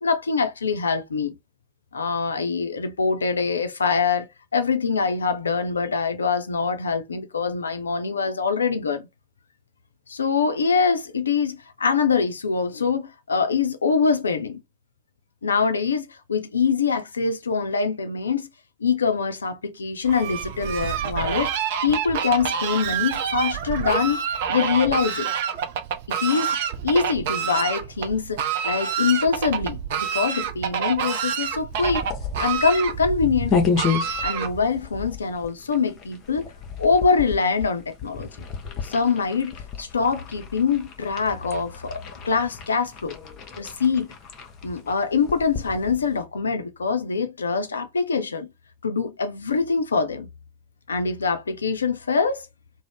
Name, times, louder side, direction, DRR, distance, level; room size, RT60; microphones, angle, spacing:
voice 1, 0.0-1.3 1.9-9.1 10.1-14.6 15.4-18.5 18.8-21.5 21.8-24.2 24.5-25.3 26.1-26.6 26.8-32.1 32.4-33.6 34.2-36.5 36.8-38.3 38.8-43.2 43.6-44.1 44.6-48.5 48.8-50.3 50.9-52.5, left 5 dB, 75° left, 0.4 m, -24 dB
Fowl, 20.0-34.8, right 8 dB, 50° right, 0.5 m, -28 dB
sound 1, 31.7-46.2, left 6 dB, 35° left, 0.6 m, -32 dB
2.4 x 2.0 x 3.3 m
figure-of-eight pair, 90°, 0 cm